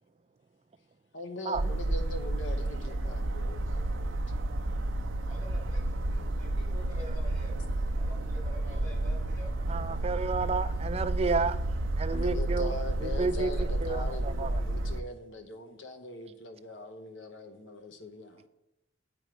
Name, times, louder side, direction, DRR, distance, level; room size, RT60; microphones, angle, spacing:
voice 1, 1.1-4.4 12.1-18.5, left 2 dB, 70° left, 0.9 m, -42 dB
sound 1, 1.5-15.0, right 1 dB, 85° right, 0.6 m, -31 dB
voice 2, 5.3-7.6 7.9-9.6, right 1 dB, 35° left, 2.3 m, -48 dB
voice 3, 9.7-11.6 12.0-12.7 13.0-14.5, right 4 dB, 30° right, 0.3 m, -31 dB
8.0 x 4.5 x 5.0 m
head